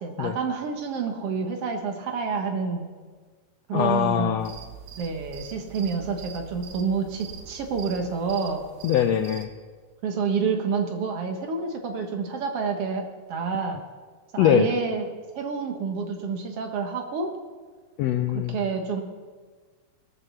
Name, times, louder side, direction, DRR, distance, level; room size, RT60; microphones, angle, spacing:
voice 1, 0.0-2.9 3.7-4.5 5.0-8.6 10.0-13.8 14.3-15.0 15.4-17.3 18.3-19.0, right 5 dB, 55° right, 4 dB, 2.0 m, -28 dB
voice 2, 3.7-4.6 8.8-9.5 14.4-14.7 18.0-18.6, left 10 dB, 85° left, 8 dB, 1.4 m, -22 dB
sound 1, 4.4-9.5, right 7 dB, 75° right, 2.3 m, -43 dB
18.5 x 6.9 x 6.9 m, 1.5 s
omnidirectional pair, 3.6 m